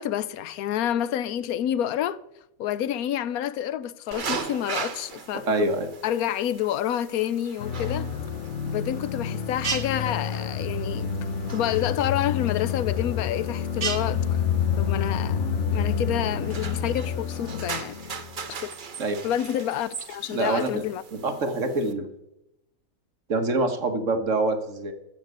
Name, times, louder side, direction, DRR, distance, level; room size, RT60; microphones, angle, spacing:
voice 1, 0.0-2.2 2.6-5.7 6.0-8.1 8.7-11.1 11.5-14.4 14.8-18.8 19.2-21.0, left 11 dB, 90° left, 1.1 m, -29 dB
sound 1, 4.1-21.9, right 6 dB, 40° right, 0.9 m, -38 dB
voice 2, 5.5-5.9 19.0-19.2 20.3-20.8 21.1-22.1 23.3-24.9, right 2 dB, 60° right, 1.8 m, -25 dB
sound 2, 7.6-18.3, left 7 dB, 60° left, 1.0 m, -28 dB
14.0 x 6.4 x 7.9 m
omnidirectional pair, 1.5 m